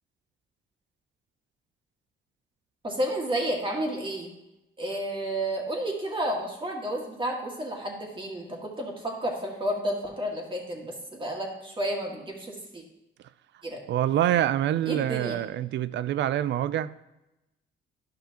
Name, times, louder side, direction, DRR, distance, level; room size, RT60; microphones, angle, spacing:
voice 1, 2.8-4.3 4.8-12.8 13.6-13.8 14.9-15.4, right 1 dB, 25° right, 2.0 m, -31 dB
voice 2, 13.9-16.9, right 11 dB, 65° right, 0.4 m, -26 dB
11.5 x 5.6 x 2.9 m
cardioid pair, 90°, 20 cm